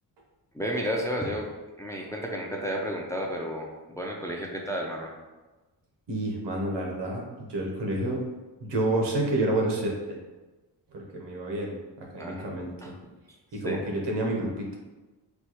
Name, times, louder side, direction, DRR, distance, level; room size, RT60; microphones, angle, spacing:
voice 1, 0.5-1.5 1.8-3.7 4.0-5.1 12.2-12.5 12.8-12.9 13.6-13.8, equal, 10° left, -1 dB, 0.4 m, -32 dB
voice 2, 6.1-8.2 8.6-10.2 10.9-11.7 12.1-12.7 13.5-14.8, right 1 dB, 80° right, -1 dB, 1.0 m, -29 dB
4.3 x 2.3 x 2.9 m, 1.2 s
cardioid pair, 90°, 42 cm